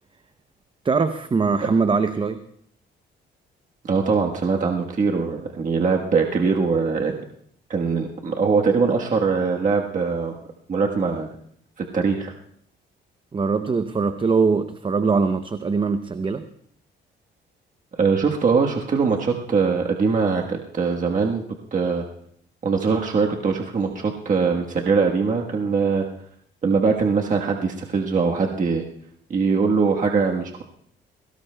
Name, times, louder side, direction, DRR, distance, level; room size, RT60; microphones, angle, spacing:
voice 1, 0.8-2.4 13.3-16.4, right 4 dB, 25° right, 10 dB, 0.7 m, -22 dB
voice 2, 3.8-7.1 7.7-10.4 10.7-11.3 11.8-12.3 18.0-21.4 21.7-22.0 22.6-26.1 26.6-28.8 29.3-30.6, right 5 dB, 40° right, 1 dB, 1.3 m, -22 dB
22.0 x 18.0 x 2.2 m, 0.66 s
cardioid pair, 90°, 20 cm